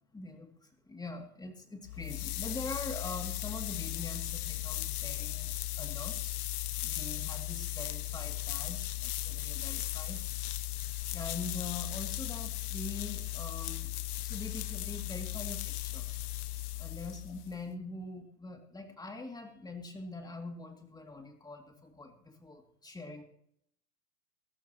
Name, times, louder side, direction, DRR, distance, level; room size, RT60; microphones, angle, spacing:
voice 1, 0.1-5.5 5.8-6.3 6.8-10.2 11.1-13.9 14.2-16.1 16.8-23.2, left 3 dB, 10° left, 4 dB, 2.5 m, -43 dB
sound 1, 1.8-17.6, left 16 dB, 70° left, 0.7 m, -37 dB
22.5 x 12.0 x 3.0 m, 0.69 s
hypercardioid pair, 105°, 47 cm